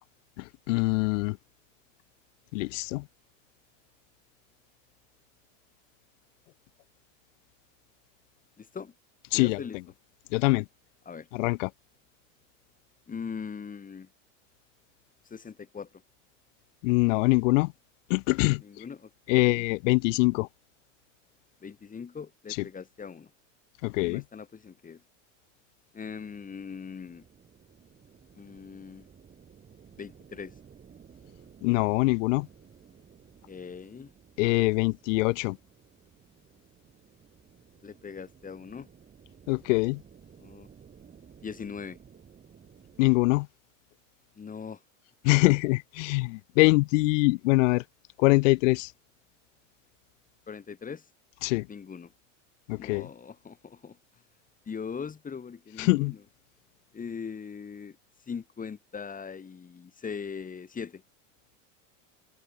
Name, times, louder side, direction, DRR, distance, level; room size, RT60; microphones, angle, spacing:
voice 1, 0.7-1.4 2.5-3.0 9.3-9.6 10.3-10.6 11.3-11.7 16.8-17.7 18.1-18.6 19.3-20.5 23.8-24.2 31.6-32.5 34.4-35.6 39.5-40.0 43.0-43.5 45.2-47.8 48.2-48.9 51.4-51.6 52.7-53.1 55.8-56.1, left 24 dB, 70° left, 0.9 m, -23 dB
voice 2, 8.6-8.9 9.3-9.8 11.0-11.3 13.1-14.1 15.2-16.0 18.6-19.7 21.6-23.3 24.0-25.0 25.9-27.2 28.3-29.1 30.0-30.5 33.5-34.1 35.0-35.2 37.8-38.9 40.4-40.7 41.4-42.0 44.4-44.8 50.5-51.0 51.7-52.1 52.8-54.0 54.7-56.2 56.9-58.0 58.3-61.0, left 6 dB, 20° left, 6.6 m, -40 dB
sound 1, 26.0-43.1, right 7 dB, 25° right, 6.6 m, -56 dB
supercardioid pair, 125°, 39 cm